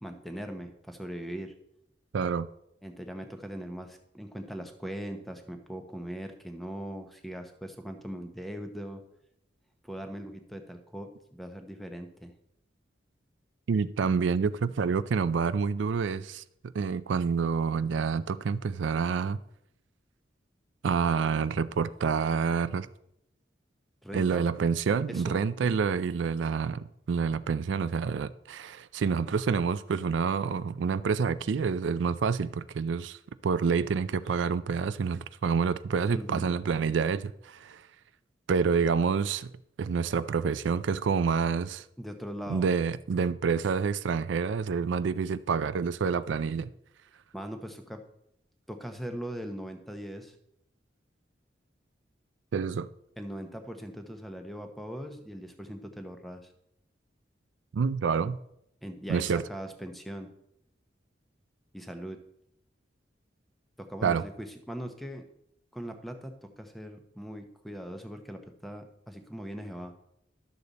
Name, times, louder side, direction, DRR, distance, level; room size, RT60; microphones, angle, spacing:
voice 1, 0.0-1.5 2.8-9.1 9.8-12.3 24.0-24.4 25.1-25.4 36.1-36.5 42.0-42.7 47.3-48.0 48.7-50.3 53.2-56.5 58.8-60.3 61.7-62.2 63.8-65.3 65.7-69.9, equal, ahead, 0.8 m, -40 dB
voice 2, 2.1-2.5 13.7-16.4 16.7-19.4 20.8-22.9 24.1-37.8 38.5-39.5 39.8-41.8 42.5-46.7 52.5-52.9 57.7-58.4 59.1-59.4 64.0-64.2, right 5 dB, 85° right, 0.4 m, -28 dB
11.5 x 6.8 x 4.0 m
head